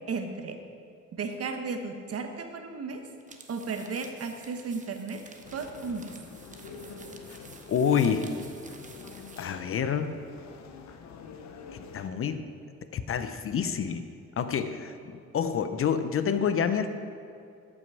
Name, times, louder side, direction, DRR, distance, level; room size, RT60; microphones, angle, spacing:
voice 1, 0.1-0.6 1.1-3.0 3.5-5.2 5.5-6.1, right 4 dB, 50° right, 6 dB, 1.1 m, -34 dB
sound 1, 3.2-9.6, right 3 dB, 25° right, 1.0 m, -50 dB
sound 2, 5.4-12.1, left 5 dB, 65° left, 0.9 m, -46 dB
voice 2, 7.7-8.3 9.4-10.1 11.7-12.4 12.9-14.0 14.4-16.9, left 7 dB, 45° left, 10 dB, 0.6 m, -28 dB
13.0 x 6.1 x 4.7 m, 2.5 s
cardioid pair, 90°, 30 cm